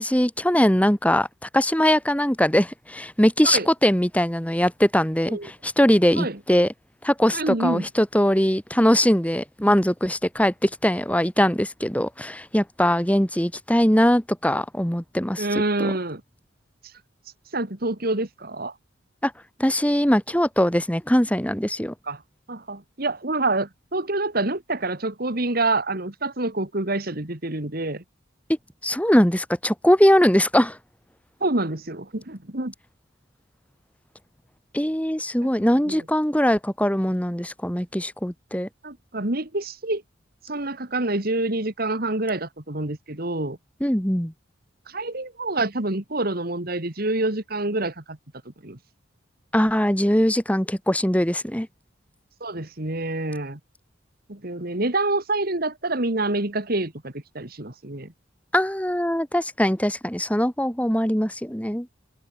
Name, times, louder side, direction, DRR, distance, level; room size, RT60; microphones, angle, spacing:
voice 1, 0.0-6.7 7.0-15.9 19.2-19.3 19.6-21.9 28.8-30.8 34.7-38.7 43.8-44.3 49.5-51.7 58.5-61.9, equal, 5° left, 2.4 m, -21 dB
voice 2, 7.3-7.9 15.4-16.2 17.5-18.7 22.1-22.2 22.5-28.0 31.4-32.7 35.4-35.5 35.9-36.0 38.8-40.0 40.4-43.6 44.9-48.2 48.6-48.8 52.4-53.6 54.3-58.1, right 2 dB, 50° right, 2.3 m, -27 dB
head